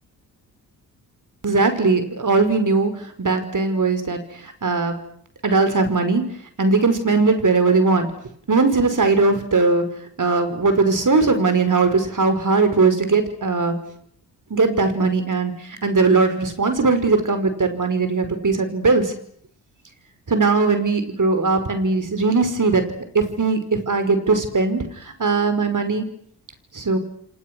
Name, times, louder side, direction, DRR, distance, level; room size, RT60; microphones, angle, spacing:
voice 1, 1.4-5.0 5.4-6.2 6.6-8.1 8.5-9.8 10.2-13.7 14.5-19.1 20.3-22.8 23.1-26.1 26.7-27.0, right 3 dB, 40° right, 8 dB, 5.7 m, -19 dB
29.5 x 25.5 x 6.4 m, 0.65 s
hypercardioid pair, 40°, 48 cm